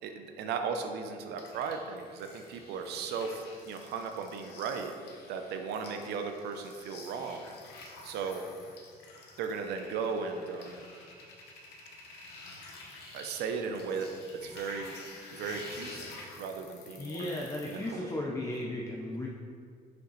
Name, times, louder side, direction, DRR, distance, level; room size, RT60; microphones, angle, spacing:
voice 1, 0.0-4.9 5.3-7.5 8.0-8.4 9.4-10.9 13.1-15.0 15.3-18.3, right 5 dB, 80° right, 5 dB, 0.6 m, -36 dB
sound 1, 1.4-18.0, left 3 dB, 75° left, 1.0 m, -50 dB
voice 2, 17.0-19.3, left 1 dB, 20° left, -2 dB, 0.6 m, -35 dB
6.5 x 5.1 x 3.1 m, 2.1 s
cardioid pair, 110°, 17 cm